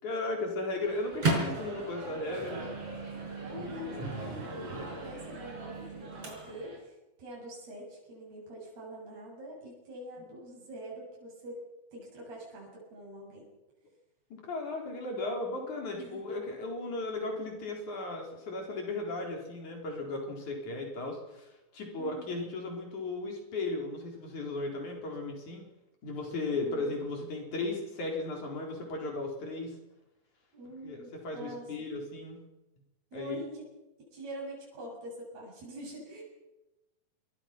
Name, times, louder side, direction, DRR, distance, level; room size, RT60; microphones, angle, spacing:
voice 1, 0.0-2.7 3.5-4.0 14.3-25.7 26.0-29.8 30.7-32.4 33.1-33.4, left 2 dB, 50° left, 1 dB, 5.5 m, -36 dB
Microwave oven, 0.8-6.8, right 3 dB, 40° right, 6.2 m, -36 dB
voice 2, 3.4-11.6 11.9-13.5 16.0-16.2 22.0-22.4 26.5-26.9 30.5-32.0 33.1-33.6 34.1-36.2, right 1 dB, 80° right, -3 dB, 9.2 m, -45 dB
26.5 x 22.5 x 6.1 m, 1.0 s
omnidirectional pair, 4.4 m